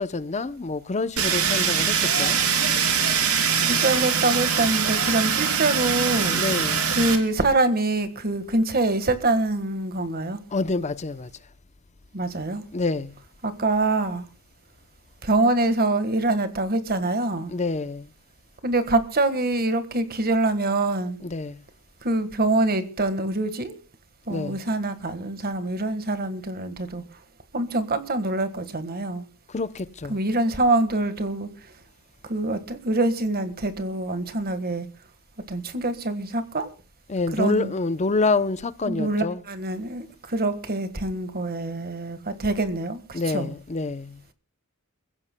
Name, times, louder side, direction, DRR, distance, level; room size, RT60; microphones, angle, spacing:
voice 1, 0.0-2.4 6.3-6.9 10.5-11.3 12.7-13.2 17.5-18.1 21.2-21.6 24.3-24.6 29.5-30.2 37.1-39.4 42.3-42.4 43.1-44.2, left 3 dB, 30° left, 0.7 m, -27 dB
Fire, 1.2-7.2, right 7 dB, 80° right, 2.8 m, -23 dB
voice 2, 3.7-6.4 6.9-10.4 12.1-12.6 13.4-14.2 15.2-17.5 18.6-21.2 22.0-23.8 24.3-27.2 27.5-29.2 30.1-31.7 32.3-34.9 35.5-36.7 37.3-37.7 38.9-43.5, right 2 dB, 45° right, 1.6 m, -25 dB
28.5 x 16.0 x 2.2 m
head